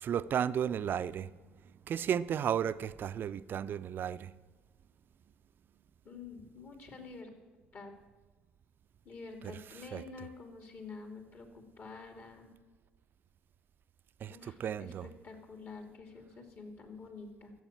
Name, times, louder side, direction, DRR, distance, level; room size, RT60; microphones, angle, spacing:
voice 1, 0.0-1.3 1.9-4.3 9.9-10.0 14.2-15.1, right 9 dB, 50° right, 0.5 m, -33 dB
voice 2, 6.0-7.3 7.7-7.9 9.0-12.5 14.3-17.5, left 4 dB, 50° left, 2.9 m, -48 dB
12.5 x 8.0 x 8.7 m
hypercardioid pair, 65°, 4 cm